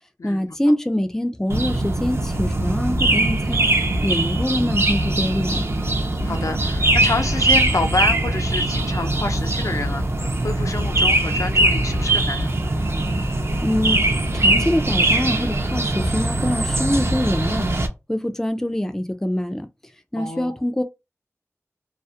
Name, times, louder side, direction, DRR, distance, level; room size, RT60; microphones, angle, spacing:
voice 1, 0.2-3.6 4.0-5.6 13.6-14.1 14.3-17.7 18.1-19.7 20.1-20.8, left 1 dB, 10° left, 0.4 m, -24 dB
sound 1, 1.5-17.9, right 2 dB, 50° right, 0.5 m, -21 dB
voice 2, 6.2-12.5 20.2-20.6, left 3 dB, 80° left, 0.4 m, -28 dB
2.3 x 2.0 x 2.7 m
wide cardioid pair, 60°, 5 cm